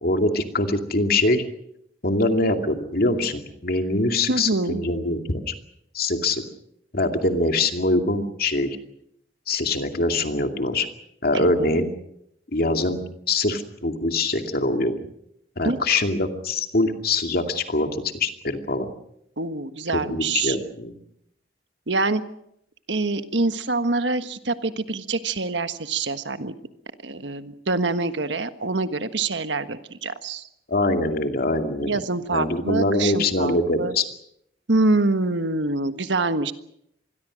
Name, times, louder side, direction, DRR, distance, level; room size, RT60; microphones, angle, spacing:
voice 1, 0.0-1.4 2.0-5.5 5.9-6.4 6.9-8.8 9.5-10.9 11.2-11.9 12.5-13.0 13.3-14.9 15.6-18.9 19.9-20.9 30.7-32.0 32.3-34.0, left 2 dB, 55° left, 5 dB, 2.5 m, -23 dB
voice 2, 4.3-4.8 11.3-11.8 15.6-15.8 19.4-20.6 21.9-22.2 22.9-26.5 27.0-30.5 31.8-33.9 34.7-36.5, right 3 dB, 85° right, 10 dB, 1.5 m, -25 dB
26.0 x 21.0 x 6.4 m, 0.75 s
head